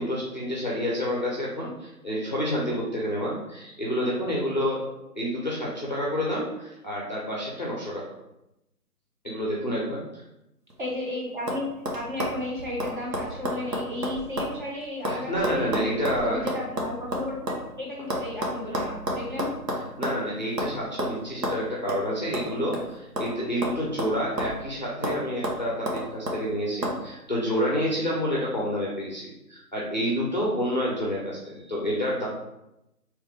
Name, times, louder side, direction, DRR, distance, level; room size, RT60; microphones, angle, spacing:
voice 1, 0.0-4.8 5.1-8.1 9.2-10.2 15.1-16.5 19.8-32.3, equal, 30° left, -4 dB, 0.6 m, -29 dB
sound 1, 10.7-11.1 11.5-11.6 11.8-14.6 14.8-17.6 18.1-20.2 20.6-20.7 21.0-21.1 21.4-21.6 21.9-22.0 22.3-23.3 23.6-24.7 25.0-25.2 25.4-26.4 26.8-27.0, equal, 80° right, 1.2 m, -30 dB
voice 2, 10.8-11.7 11.9-15.9 16.2-19.5, left 2 dB, 30° right, -5 dB, 1.1 m, -33 dB
3.4 x 3.1 x 3.2 m, 0.89 s
figure-of-eight pair, 155°, 47 cm